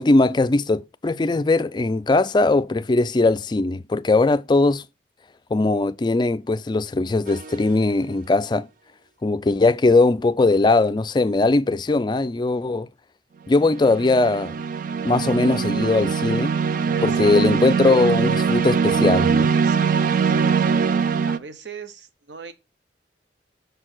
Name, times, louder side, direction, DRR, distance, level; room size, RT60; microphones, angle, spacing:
voice 1, 0.0-4.8 5.5-8.7 9.2-12.9 13.5-14.5 15.0-16.5 17.0-19.5, left 3 dB, 25° left, 0.3 m, -20 dB
sound 1, 7.3-7.6 13.5-21.4, right 6 dB, 45° right, 0.4 m, -22 dB
voice 2, 16.9-17.7 19.5-20.7 21.3-22.5, right 4 dB, 75° right, 0.9 m, -40 dB
6.7 x 4.5 x 6.1 m
head